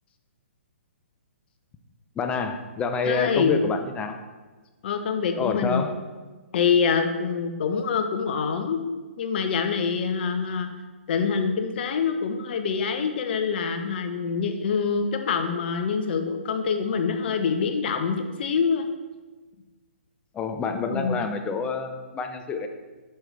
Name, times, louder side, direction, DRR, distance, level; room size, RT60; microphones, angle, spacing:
voice 1, 2.2-4.2 5.4-5.9 20.3-22.7, left 4 dB, 15° left, 6 dB, 0.6 m, -28 dB
voice 2, 3.0-3.6 4.8-5.8 6.5-8.8 9.2-10.7 11.1-18.9 20.9-21.2, left 6 dB, 55° left, 6 dB, 1.0 m, -25 dB
10.0 x 5.7 x 3.4 m, 1.3 s
hypercardioid pair, 135°, 7 cm